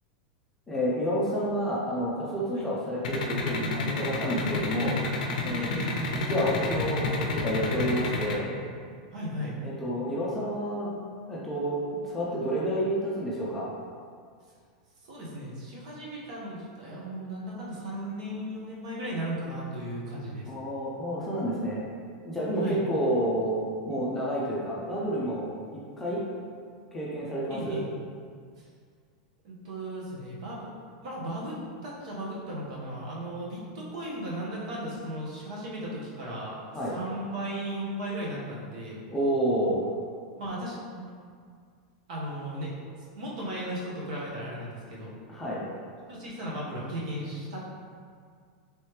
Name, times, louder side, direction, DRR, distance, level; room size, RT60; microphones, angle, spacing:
voice 1, 0.7-5.0 5.4-5.8 6.1-8.5 9.6-10.9 11.3-11.8 12.0-13.7 20.5-21.8 22.2-23.6 23.8-26.2 26.9-27.8 36.7-36.9 39.1-39.9 45.3-45.7, equal, 5° left, -7 dB, 0.4 m, -29 dB
sound 1, 3.0-8.3, left 3 dB, 85° left, 0.5 m, -29 dB
voice 2, 5.6-6.0 9.1-9.6 15.0-20.5 22.6-22.8 27.5-27.9 28.6-28.7 29.4-30.7 31.0-31.6 31.8-39.0 40.4-41.1 42.1-45.2 46.1-47.7, right 1 dB, 60° right, -5 dB, 1.0 m, -36 dB
3.2 x 3.0 x 3.2 m, 2.1 s
supercardioid pair, 170°, 4 cm